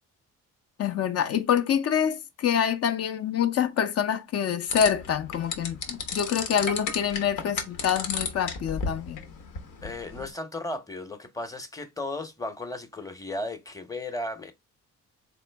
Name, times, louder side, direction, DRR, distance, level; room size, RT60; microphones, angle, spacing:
voice 1, 0.8-9.2, left 8 dB, 55° left, 0.6 m, -26 dB
sound 1, 4.7-10.3, left 5 dB, 80° left, 1.0 m, -34 dB
voice 2, 9.8-14.5, left 2 dB, 10° left, 0.8 m, -35 dB
3.7 x 3.0 x 3.3 m
cardioid pair, 90°, 30 cm